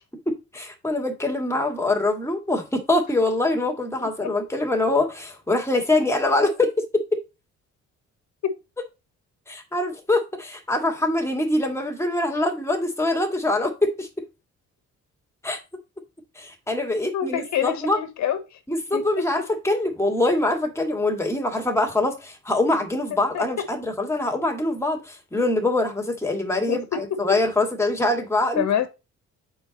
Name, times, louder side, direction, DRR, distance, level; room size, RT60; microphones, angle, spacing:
voice 1, 0.3-7.2 9.5-14.1 15.4-15.6 16.4-18.0 18.7-28.6, left 2 dB, 10° left, 2.2 m, -24 dB
voice 2, 4.0-4.3 8.4-8.5 17.1-18.6 18.9-19.3 23.3-23.5 26.7-27.4 28.5-28.9, left 9 dB, 65° left, 1.6 m, -27 dB
6.9 x 4.8 x 4.1 m
cardioid pair, 90°, 30 cm